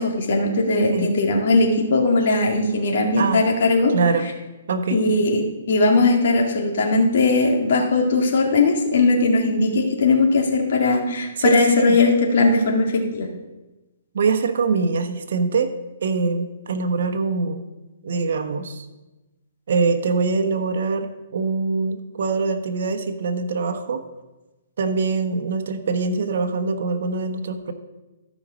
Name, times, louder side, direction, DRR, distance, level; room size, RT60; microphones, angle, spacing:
voice 1, 0.0-3.9 4.9-5.4 5.7-13.3, left 3 dB, 60° left, 1 dB, 2.1 m, -19 dB
voice 2, 3.9-4.3 4.7-5.0 11.4-12.0 14.1-15.7 16.0-17.6 18.0-18.8 19.7-24.0 24.8-27.7, right 4 dB, 65° right, 6 dB, 1.1 m, -23 dB
13.5 x 5.4 x 5.1 m, 1.1 s
hypercardioid pair, 155°, 0 cm